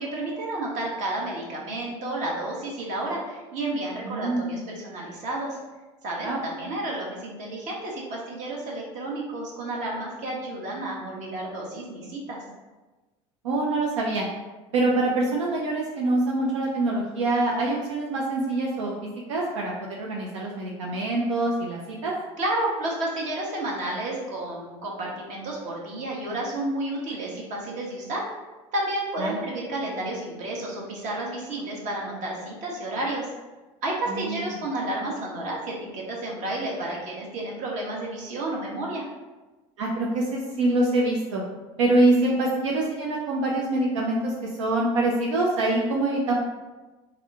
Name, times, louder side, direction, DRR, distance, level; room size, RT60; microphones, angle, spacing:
voice 1, 0.0-5.6 6.0-12.4 22.4-28.3 28.7-33.3 33.8-39.1, right 1 dB, 55° right, -3 dB, 1.1 m, -31 dB
voice 2, 4.0-4.6 6.2-6.4 13.4-14.3 14.7-18.9 19.3-22.1 29.2-29.4 34.1-34.4 39.8-41.4 41.8-46.3, right 2 dB, 85° right, -2 dB, 0.5 m, -25 dB
3.5 x 2.2 x 3.5 m, 1.2 s
hypercardioid pair, 80°, 15 cm